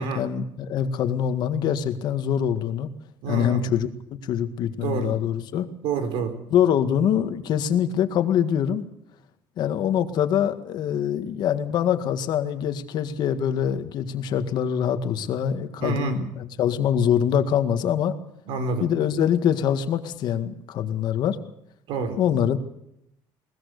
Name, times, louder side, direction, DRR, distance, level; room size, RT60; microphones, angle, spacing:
voice 1, 0.0-2.9 3.3-3.9 4.2-5.7 6.5-8.9 9.6-18.2 18.8-21.4 22.2-22.6, left 9 dB, 55° left, 9 dB, 1.9 m, -24 dB
voice 2, 3.2-3.7 4.8-5.2 5.8-6.3 15.8-16.2 18.5-18.9 21.9-22.2, right 5 dB, 80° right, 9 dB, 4.4 m, -28 dB
21.5 x 19.5 x 6.7 m, 0.78 s
cardioid pair, 150°, 9 cm